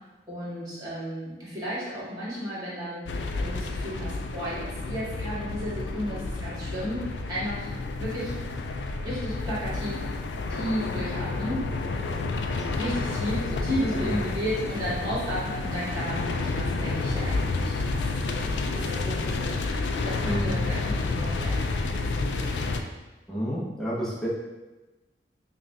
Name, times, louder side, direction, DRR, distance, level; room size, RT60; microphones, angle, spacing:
voice 1, 0.3-3.0 3.4-8.3 9.0-10.0 10.5-11.7 12.1-12.2 12.6-19.6 20.0-22.5, equal, 25° right, -10 dB, 1.5 m, -33 dB
sound 1, 3.1-22.8, left 3 dB, 80° left, 0.3 m, -30 dB
voice 2, 23.3-24.3, equal, 5° left, -7 dB, 0.7 m, -30 dB
5.3 x 2.3 x 2.6 m, 1.1 s
head